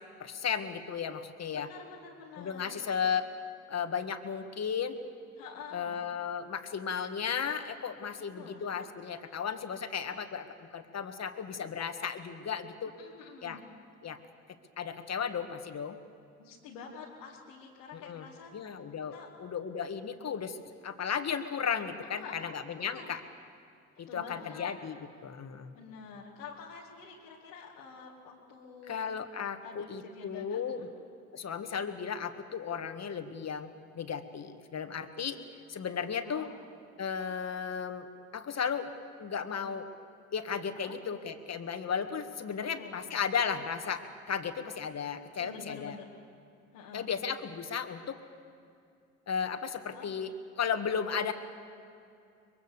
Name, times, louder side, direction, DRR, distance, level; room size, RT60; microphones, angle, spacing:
voice 1, 0.2-1.7 2.4-3.3 3.7-5.0 5.7-13.0 13.4-13.6 14.0-14.2 14.8-16.0 17.9-18.3 18.5-23.2 24.0-25.0 25.2-25.7 28.9-30.9 31.3-33.7 34.0-35.4 35.7-36.5 37.0-38.1 38.3-38.9 39.2-39.9 40.3-46.0 46.9-48.2 49.3-51.3, left 7 dB, 45° left, 8 dB, 1.8 m, -35 dB
voice 2, 1.5-2.8 5.4-6.0 8.2-8.7 13.0-13.6 16.4-18.5 19.1-19.3 22.1-23.2 24.1-24.7 25.7-29.0 29.6-30.9 36.2-36.5 40.7-41.0 42.8-43.0 45.4-46.2 46.7-47.1 49.9-50.1, left 5 dB, 90° left, -5 dB, 2.3 m, -48 dB
24.0 x 22.0 x 6.8 m, 2.5 s
hypercardioid pair, 55°, 36 cm